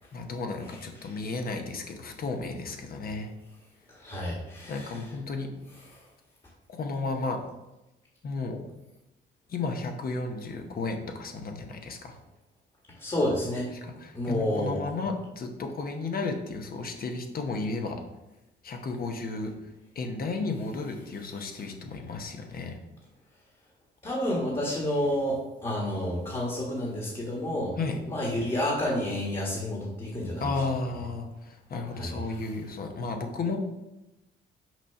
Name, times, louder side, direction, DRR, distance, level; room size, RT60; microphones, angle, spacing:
voice 1, 0.1-3.3 4.7-5.5 6.7-7.4 8.2-8.6 9.5-12.2 13.7-18.0 18.6-19.5 19.9-22.8 27.8-28.0 30.4-33.6, left 3 dB, 50° left, 4 dB, 0.9 m, -33 dB
voice 2, 4.0-4.9 13.0-13.7 14.1-14.8 24.0-27.7 28.1-30.5 32.0-32.2, left 1 dB, 25° left, -3 dB, 1.5 m, -29 dB
6.0 x 2.8 x 5.6 m, 0.98 s
cardioid pair, 90°, 20 cm